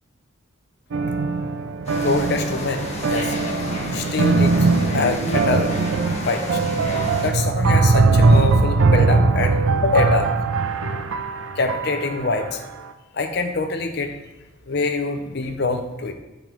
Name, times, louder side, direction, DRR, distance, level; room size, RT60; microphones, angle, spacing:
sound 1, 0.9-12.4, right 3 dB, 75° right, 0.5 m, -20 dB
sound 2, 1.8-7.3, left 1 dB, 35° left, 1.2 m, -30 dB
voice 1, 1.9-3.4 3.9-5.7 6.3-6.6 7.2-10.3 11.6-12.6 13.1-14.1 14.7-16.1, left 3 dB, 55° left, 5 dB, 0.7 m, -24 dB
6.0 x 5.3 x 4.5 m, 1.1 s
head